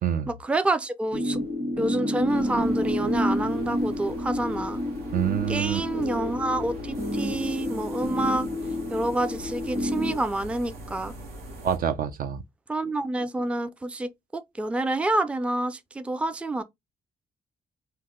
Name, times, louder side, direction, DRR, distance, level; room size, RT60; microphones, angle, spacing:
voice 1, 0.3-1.4 1.8-4.8 5.5-8.5 8.9-11.1 12.7-16.6, right 2 dB, 5° right, 0.4 m, -28 dB
sound 1, 1.1-10.2, left 1 dB, 40° right, 1.3 m, -29 dB
sound 2, 2.3-11.8, right 2 dB, 80° right, 1.0 m, -42 dB
voice 2, 5.1-5.8 11.6-12.4, right 9 dB, 65° right, 0.5 m, -26 dB
2.8 x 2.1 x 3.5 m
cardioid pair, 85°, 16 cm